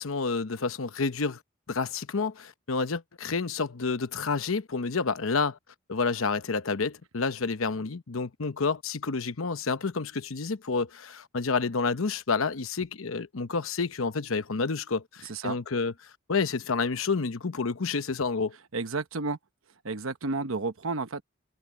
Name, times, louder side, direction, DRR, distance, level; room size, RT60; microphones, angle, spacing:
voice 1, 0.0-1.4 1.7-5.6 5.9-15.9 16.3-18.5, left 4 dB, 90° left, 0.9 m, -29 dB
voice 2, 15.2-15.6 18.7-19.4 19.8-21.2, right 3 dB, 85° right, 1.0 m, -31 dB
head